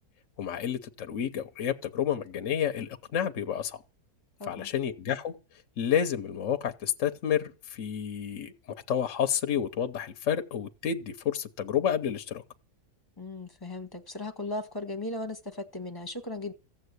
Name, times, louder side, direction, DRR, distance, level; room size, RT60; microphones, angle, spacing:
voice 1, 0.4-3.8 4.4-5.4 5.8-12.4, left 9 dB, 55° left, 1.1 m, -30 dB
voice 2, 13.2-16.5, left 2 dB, 15° left, 1.2 m, -37 dB
14.5 x 7.4 x 8.1 m
omnidirectional pair, 1.7 m